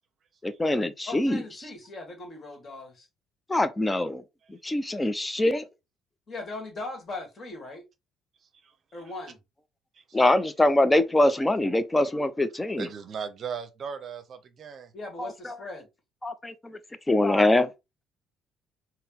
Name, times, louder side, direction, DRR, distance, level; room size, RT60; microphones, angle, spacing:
voice 1, 0.4-1.4 3.5-4.2 4.5-5.6 10.1-12.9 15.2-15.3 16.2-16.8 17.1-17.7, left 1 dB, 15° left, 0.6 m, -23 dB
voice 2, 1.0-3.1 6.3-7.9 8.9-9.4 14.9-15.9, left 2 dB, 35° left, 1.6 m, -39 dB
voice 3, 12.8-14.9, right 7 dB, 45° right, 0.7 m, -37 dB
4.1 x 2.2 x 3.6 m
figure-of-eight pair, 55°, 0 cm